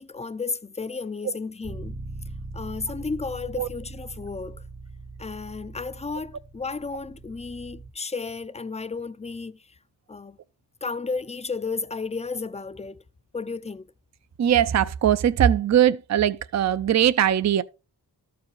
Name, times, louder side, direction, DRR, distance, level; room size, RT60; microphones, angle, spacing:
voice 1, 0.0-1.9 2.5-4.6 5.2-9.6 10.1-10.4 10.8-13.0 13.3-13.9, left 4 dB, 20° left, 0.4 m, -33 dB
Bass guitar, 1.6-7.9, right 2 dB, 75° right, 2.1 m, -40 dB
voice 2, 14.4-17.6, right 10 dB, 45° right, 0.4 m, -20 dB
13.0 x 4.8 x 3.1 m
wide cardioid pair, 105°, 39 cm